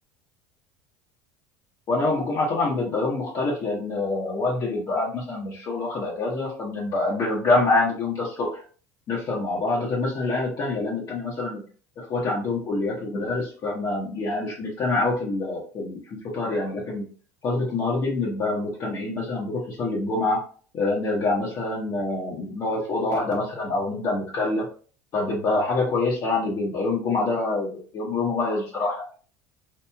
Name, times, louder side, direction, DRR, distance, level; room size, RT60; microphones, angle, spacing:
voice 1, 1.9-8.6 9.1-11.6 12.0-16.0 16.3-17.1 17.4-20.4 20.7-24.7 25.1-29.1, left 2 dB, 45° left, -5 dB, 0.9 m, -26 dB
2.9 x 2.6 x 2.2 m, 0.41 s
hypercardioid pair, 75°, 9 cm